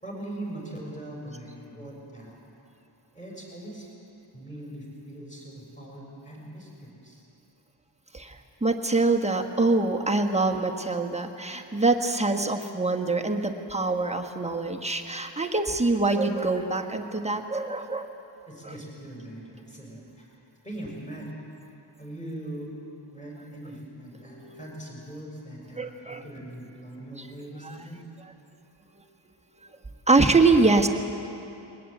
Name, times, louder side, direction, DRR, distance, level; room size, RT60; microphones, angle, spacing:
voice 1, 0.0-2.3 3.1-3.9 4.3-7.3 18.5-20.3 20.6-21.4 22.0-22.7 23.1-28.0, right 1 dB, 15° left, -3 dB, 6.1 m, -41 dB
voice 2, 8.1-18.1 24.2-24.6 25.8-26.2 27.6-27.8 30.1-30.9, right 3 dB, 15° right, 2 dB, 1.4 m, -24 dB
21.5 x 19.5 x 8.1 m, 2.9 s
wide cardioid pair, 130°, 48 cm